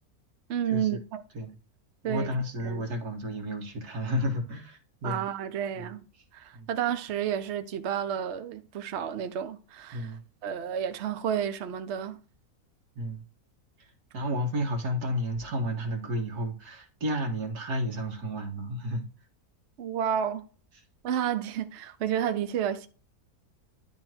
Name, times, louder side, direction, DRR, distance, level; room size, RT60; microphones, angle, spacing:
voice 1, 0.5-1.2 2.0-2.3 2.6-2.8 5.0-6.0 6.3-12.2 19.8-20.4 21.0-22.9, right 9 dB, 55° right, 0.9 m, -31 dB
voice 2, 2.0-5.2 5.8-5.9 6.5-6.7 9.9-10.2 13.0-13.2 14.1-19.1, equal, 90° right, 2.2 m, -32 dB
10.5 x 3.7 x 4.4 m
omnidirectional pair, 1.6 m